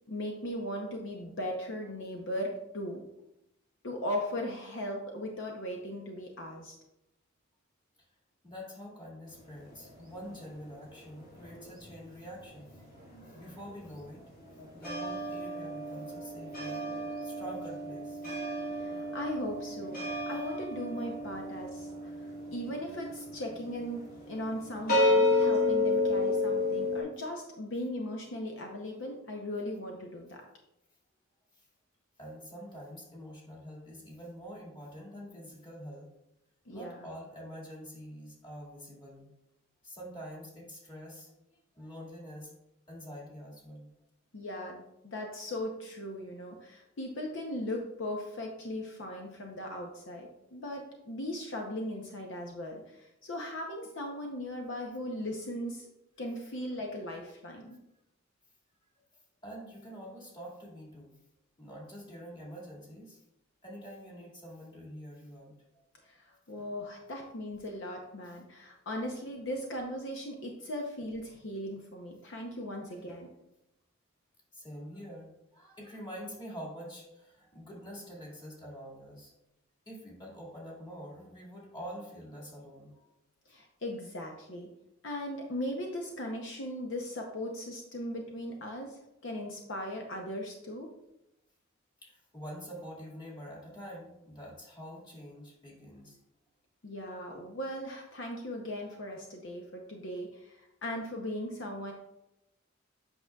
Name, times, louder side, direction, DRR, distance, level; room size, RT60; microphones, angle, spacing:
voice 1, 0.1-3.0 3.8-6.7 18.7-20.0 20.3-22.1 22.5-24.0 24.3-30.4 36.7-37.1 44.3-55.9 56.2-57.8 66.1-73.3 83.5-84.7 85.0-90.9 96.8-101.9, left 1 dB, 65° left, 2 dB, 0.7 m, -38 dB
voice 2, 8.4-14.2 14.7-16.8 17.1-18.2 31.5-31.6 32.2-36.1 36.7-39.3 39.8-41.3 41.8-42.5 42.9-43.9 59.4-61.1 61.6-63.2 63.6-65.5 72.8-73.0 74.5-79.3 79.9-83.1 92.0-96.2, equal, 25° left, -3 dB, 2.1 m, -46 dB
sound 1, 9.3-12.0 12.2-27.0, left 2 dB, 50° left, 2.0 m, -32 dB
8.1 x 5.9 x 2.3 m, 0.89 s
head